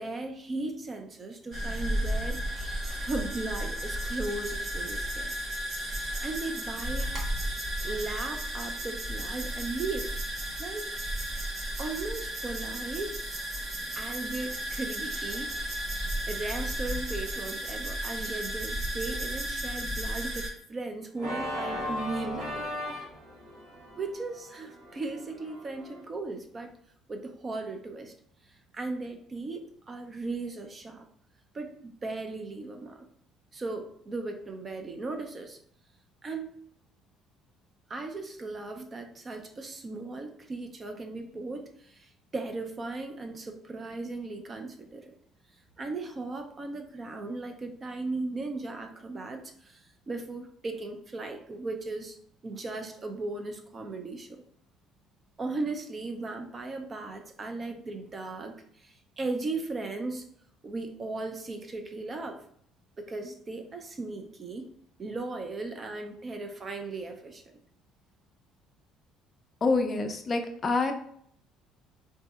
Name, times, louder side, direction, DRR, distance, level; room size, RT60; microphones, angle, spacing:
voice 1, 0.0-2.7 3.0-5.3 6.2-7.1 7.8-10.1 10.6-10.9 11.8-13.1 13.9-15.5 16.3-22.8 24.0-26.7 27.1-28.1 28.7-31.1 31.5-33.0 33.5-35.6 36.2-36.6 37.9-45.2 45.8-52.2 52.4-54.4 55.4-60.2 60.6-62.4 63.0-64.7 65.0-67.5, right 3 dB, 25° right, 5 dB, 0.5 m, -37 dB
sound 1, 1.5-20.5, right 1 dB, 45° right, 1.2 m, -34 dB
Organ, 21.2-26.0, left 1 dB, 80° right, 1.1 m, -37 dB
voice 2, 69.6-70.9, left 3 dB, 25° left, 5 dB, 0.5 m, -26 dB
4.0 x 2.7 x 2.3 m, 0.67 s
cardioid pair, 140°, 0 cm